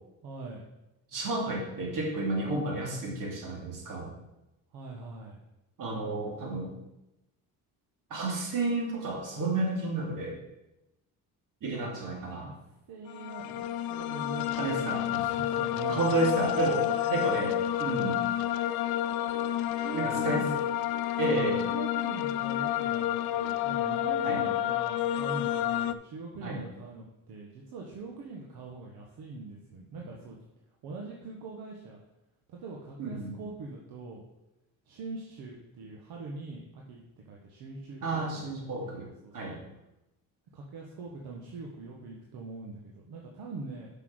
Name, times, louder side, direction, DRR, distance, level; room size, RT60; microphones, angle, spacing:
voice 1, 0.2-0.6 4.7-5.4 12.0-12.5 12.9-16.0 16.9-17.3 19.7-20.6 21.2-30.4 30.8-32.0 32.5-34.2 34.9-38.5 38.8-39.6 40.5-43.9, right 3 dB, 80° right, -1 dB, 1.4 m, -42 dB
voice 2, 1.1-4.1 5.8-6.7 8.1-10.4 11.6-12.5 14.6-15.2 15.9-16.8 17.1-18.2 19.9-20.4 21.2-21.6 24.2-24.4 26.4-26.6 33.0-33.4 38.0-39.1 39.3-39.6, right 2 dB, 60° right, -1 dB, 2.8 m, -31 dB
sound 1, 13.1-25.9, left 12 dB, 85° left, 0.5 m, -30 dB
6.2 x 5.7 x 6.2 m, 0.93 s
cardioid pair, 105°, 36 cm